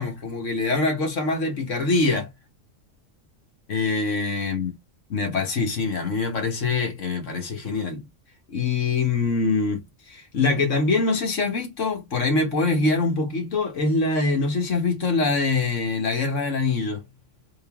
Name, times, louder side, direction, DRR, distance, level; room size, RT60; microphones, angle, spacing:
voice 1, 0.0-2.3 3.7-4.7 5.1-8.0 8.5-9.8 10.1-17.0, left 3 dB, 80° left, 1.6 m, -24 dB
3.9 x 2.6 x 3.5 m
omnidirectional pair, 1.3 m